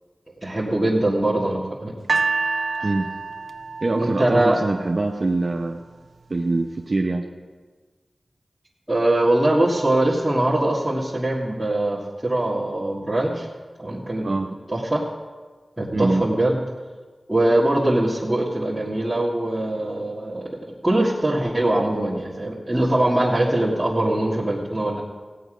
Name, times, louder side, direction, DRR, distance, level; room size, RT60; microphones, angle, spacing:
voice 1, 0.4-2.0 2.8-2.9 4.0-4.6 8.9-13.5 13.8-14.3 14.7-15.0 15.8-16.6 17.3-25.0, right 1 dB, 15° right, -6 dB, 1.9 m, -22 dB
sound 1, 2.1-5.3 6.0-6.1, right 4 dB, 75° right, 0.5 m, -27 dB
voice 2, 3.8-5.8 6.3-7.3 14.2-14.6 15.9-16.2, right 2 dB, 50° right, 1 dB, 0.9 m, -23 dB
16.5 x 9.3 x 5.1 m, 1.4 s
wide cardioid pair, 65°, 0 cm